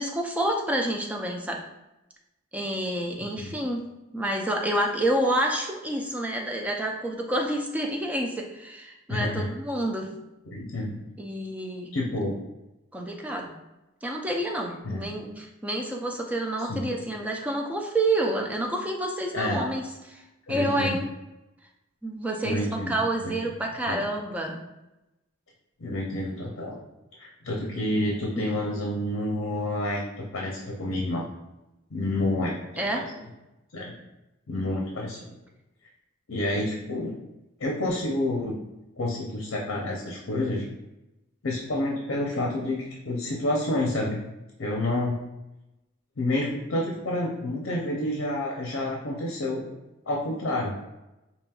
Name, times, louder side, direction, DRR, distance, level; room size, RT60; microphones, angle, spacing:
voice 1, 0.0-1.6 2.5-3.8 4.1-10.1 11.2-11.9 12.9-13.5 14.0-21.1 22.0-24.6 32.8-33.1, right 1 dB, 5° right, 1 dB, 0.4 m, -28 dB
voice 2, 9.1-9.5 10.5-11.0 11.9-12.4 14.8-15.1 16.6-16.9 19.3-19.6 20.5-21.0 22.4-22.9 23.2-23.3 23.9-24.0 25.8-26.8 27.2-30.0 30.3-31.3 31.9-32.6 32.9-33.0 33.7-33.9 34.5-35.3 36.3-37.1 37.6-38.5 39.0-40.6 41.4-44.2 44.6-45.2 46.2-49.7 50.1-50.7, left 1 dB, 70° left, -2 dB, 0.7 m, -29 dB
5.1 x 2.9 x 2.3 m, 0.97 s
head